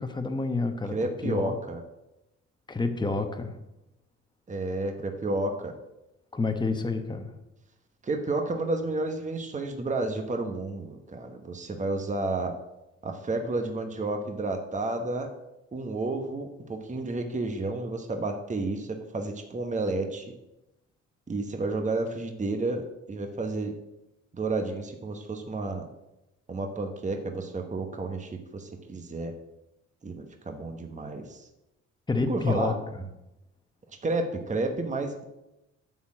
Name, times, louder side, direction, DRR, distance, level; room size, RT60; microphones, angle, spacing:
voice 1, 0.0-0.9 1.2-1.6 2.7-3.6 6.3-7.3 32.1-33.0, left 3 dB, 15° left, 6 dB, 1.1 m, -29 dB
voice 2, 0.8-1.8 4.5-5.7 8.0-12.5 13.0-15.3 15.7-20.3 21.3-23.7 24.3-25.9 26.5-29.3 30.0-31.5 32.3-32.8 34.0-35.2, right 2 dB, 25° right, 4 dB, 1.1 m, -31 dB
9.3 x 4.4 x 7.5 m, 0.94 s
cardioid pair, 90°, 30 cm